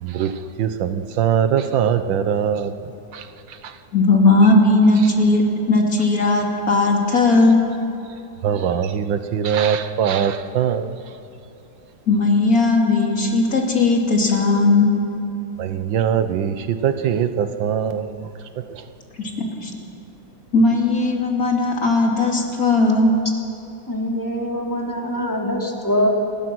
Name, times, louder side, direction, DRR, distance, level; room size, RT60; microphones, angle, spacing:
voice 1, 0.0-0.3 0.6-2.7 3.1-3.2 3.6-3.7 8.4-10.9 15.6-18.2, right 8 dB, 85° right, 10 dB, 1.7 m, -21 dB
voice 2, 3.9-7.6 12.1-14.9 19.2-19.7 20.5-23.1, left 2 dB, 50° left, 0 dB, 3.3 m, -17 dB
voice 3, 23.9-26.1, equal, 10° left, -1 dB, 3.0 m, -23 dB
27.5 x 21.0 x 6.2 m, 3.0 s
omnidirectional pair, 2.0 m